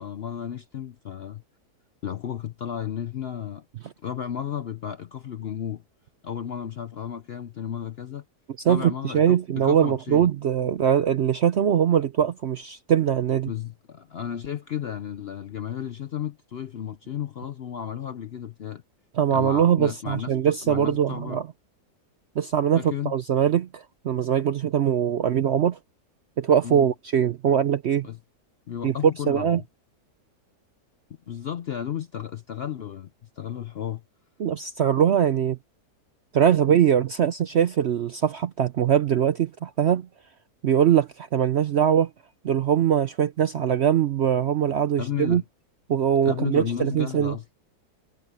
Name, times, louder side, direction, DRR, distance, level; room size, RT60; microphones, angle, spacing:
voice 1, 0.0-1.4 2.0-3.7 4.0-5.8 6.2-8.2 8.7-10.3 13.4-18.8 19.3-21.4 22.8-23.1 26.6-26.9 28.0-28.2 28.7-29.6 31.3-33.1 33.4-34.0 45.0-45.4 46.2-47.4, left 9 dB, 60° left, 0.6 m, -33 dB
voice 2, 8.6-13.5 19.1-21.5 22.4-25.8 26.4-28.1 28.8-28.9 29.3-29.6 34.4-35.6 36.3-40.1 40.6-42.1 42.4-45.4 45.9-47.3, right 9 dB, 65° right, 0.7 m, -22 dB
omnidirectional pair, 1.7 m